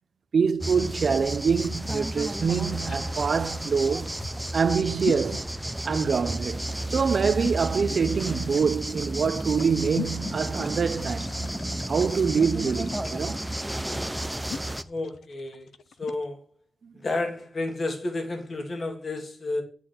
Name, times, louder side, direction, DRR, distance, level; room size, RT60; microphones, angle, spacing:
voice 1, 0.3-4.2 4.5-5.5 5.8-11.3 11.9-13.5, right 6 dB, 55° right, 0.7 m, -25 dB
sound 1, 0.6-14.8, right 1 dB, 5° right, 0.7 m, -32 dB
sound 2, 1.5-16.2, left 7 dB, 80° left, 0.7 m, -41 dB
voice 2, 14.8-15.7 16.0-16.4 16.9-19.6, left 2 dB, 40° left, 2.5 m, -31 dB
9.8 x 6.0 x 8.1 m
wide cardioid pair, 140°, 0 cm